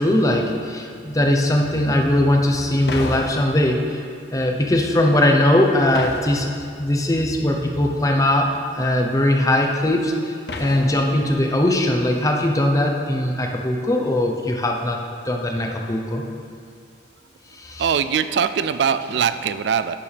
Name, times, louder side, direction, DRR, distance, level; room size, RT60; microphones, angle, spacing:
voice 1, 0.0-4.0 4.3-6.5 6.8-15.0 15.2-16.2 17.5-17.8, left 1 dB, 20° left, 2 dB, 0.8 m, -20 dB
sound 1, 2.9-4.1 5.9-7.0 10.5-11.5, left 2 dB, 65° left, 0.7 m, -33 dB
voice 2, 17.8-20.0, right 7 dB, 70° right, 12 dB, 0.3 m, -21 dB
11.5 x 9.8 x 3.4 m, 2.3 s
head